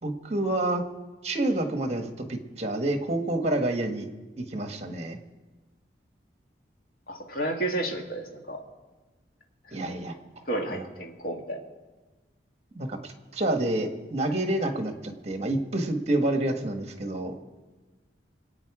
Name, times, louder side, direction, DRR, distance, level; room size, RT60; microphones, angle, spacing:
voice 1, 0.0-0.8 1.2-4.1 4.4-5.2 9.7-10.1 10.7-10.8 12.7-17.3, right 1 dB, 35° right, 5 dB, 1.4 m, -28 dB
voice 2, 7.1-8.6 9.7-9.8 10.5-11.6, right 1 dB, 55° left, 1 dB, 2.0 m, -31 dB
26.0 x 8.8 x 4.8 m, 1.2 s
head